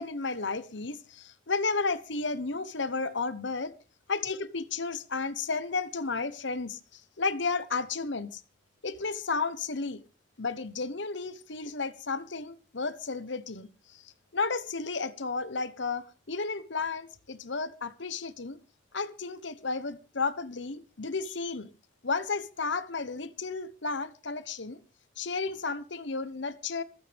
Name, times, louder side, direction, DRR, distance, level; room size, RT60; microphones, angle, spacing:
voice 1, 0.0-3.7 4.1-8.4 8.8-10.0 10.4-14.0 14.3-18.6 18.9-21.7 22.0-24.8 25.2-26.8, left 4 dB, 65° left, 1.1 m, -33 dB
27.0 x 9.3 x 3.5 m
head